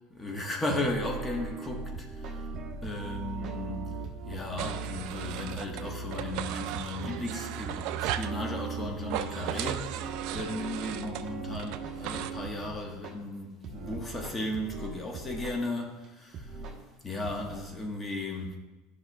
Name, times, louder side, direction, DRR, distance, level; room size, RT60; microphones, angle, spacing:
voice 1, 0.1-2.1 2.3-2.4 2.8-3.8 4.3-16.5 17.0-18.6, left 1 dB, 20° left, 1 dB, 1.4 m, -35 dB
sound 1, 0.8-13.1 13.6-15.6 16.0-16.1 16.3-16.8 17.2-17.6, right 5 dB, 45° right, 1.2 m, -39 dB
sound 2, 4.6-5.8 6.1-8.4 9.0-12.3, right 12 dB, 65° right, 0.4 m, -37 dB
11.5 x 5.8 x 2.4 m, 1.1 s
supercardioid pair, 100°, 0 cm